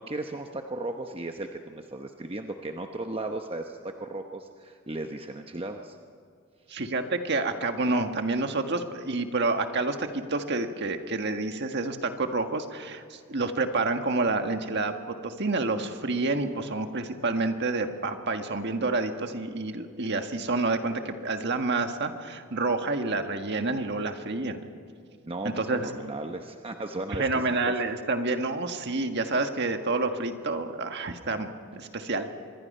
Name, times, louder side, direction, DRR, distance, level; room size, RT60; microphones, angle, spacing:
voice 1, 0.0-6.0 25.3-27.4 27.7-27.8, right 2 dB, 25° right, 4 dB, 0.9 m, -36 dB
voice 2, 6.7-24.6 25.4-25.9 27.2-32.4, right 3 dB, 50° right, 6 dB, 1.6 m, -28 dB
25.5 x 21.5 x 5.5 m, 2.2 s
head